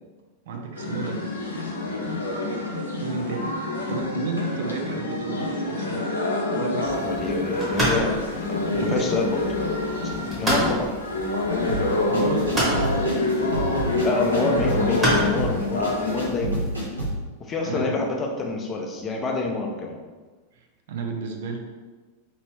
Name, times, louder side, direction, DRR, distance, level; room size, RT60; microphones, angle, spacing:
voice 1, 0.5-1.2 2.9-6.1 6.5-7.2 8.7-9.1 12.0-12.9 17.6-18.0 20.9-21.6, right 4 dB, 55° right, 2 dB, 0.4 m, -32 dB
sound 1, 0.8-16.2, left 2 dB, 75° left, 0.5 m, -27 dB
sound 2, 6.8-16.8, right 1 dB, 15° right, 1.2 m, -31 dB
voice 2, 7.0-9.4 10.2-11.0 14.0-16.8 17.4-20.0, left 3 dB, 25° left, 1 dB, 0.5 m, -27 dB
sound 3, 11.7-17.2, right 1 dB, 80° right, 0.9 m, -29 dB
3.0 x 2.7 x 3.1 m, 1.3 s
figure-of-eight pair, 90°, 0 cm